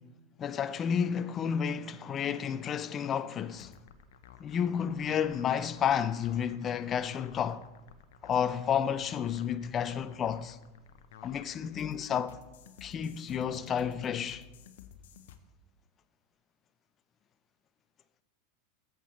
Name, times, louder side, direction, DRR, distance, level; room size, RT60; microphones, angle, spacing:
voice 1, 0.4-3.8 4.4-7.6 8.2-10.6 11.2-12.4 12.8-14.4, left 8 dB, 30° left, 0.5 m, -31 dB
sound 1, 3.5-15.4, left 9 dB, 70° left, 0.7 m, -54 dB
13.5 x 8.1 x 3.3 m
hypercardioid pair, 100°, 0 cm